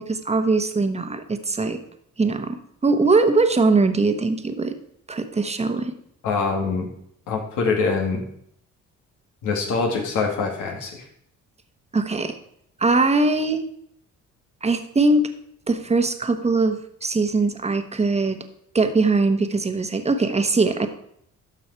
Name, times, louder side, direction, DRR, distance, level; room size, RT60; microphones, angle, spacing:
voice 1, 0.0-1.8 2.2-4.7 5.1-6.0 11.9-12.4 12.8-13.6 14.6-15.3 15.7-18.4 18.7-20.9, right 3 dB, 20° right, 7 dB, 1.2 m, -21 dB
voice 2, 6.2-6.9 7.3-8.2 9.4-11.0, left 4 dB, 85° left, 1 dB, 2.3 m, -24 dB
12.0 x 6.1 x 4.6 m, 0.70 s
cardioid pair, 90°, 30 cm